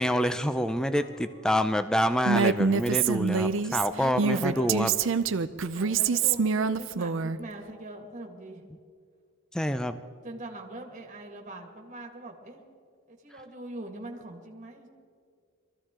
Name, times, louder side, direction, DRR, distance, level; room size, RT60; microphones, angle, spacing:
voice 1, 0.0-4.9 9.5-10.0, equal, 5° left, 10 dB, 0.4 m, -27 dB
voice 2, 0.9-1.7 3.8-4.9 5.7-8.6 10.2-12.6 13.1-14.9, right 1 dB, 35° right, 1 dB, 1.7 m, -42 dB
Female speech woman speaking, 2.3-7.4, right 5 dB, 60° right, 0.5 m, -26 dB
22.5 x 14.0 x 3.7 m, 2.2 s
head